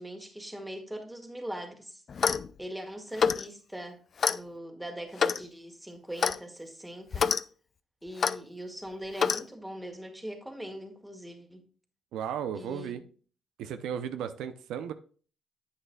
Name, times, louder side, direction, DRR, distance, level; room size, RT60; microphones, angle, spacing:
voice 1, 0.0-2.0 2.6-4.0 4.3-7.3 8.0-11.6 12.5-13.1, right 1 dB, 5° right, 1.9 m, -41 dB
Clock, 2.1-2.5 3.2-3.5 4.2-4.4 5.2-5.4 6.2-6.4 7.1-7.4 8.2-8.4 9.2-9.4, left 6 dB, 50° left, 0.4 m, -26 dB
voice 2, 12.1-13.0 13.6-14.9, right 8 dB, 85° right, 0.6 m, -35 dB
9.7 x 8.2 x 2.3 m
cardioid pair, 90°, 0 cm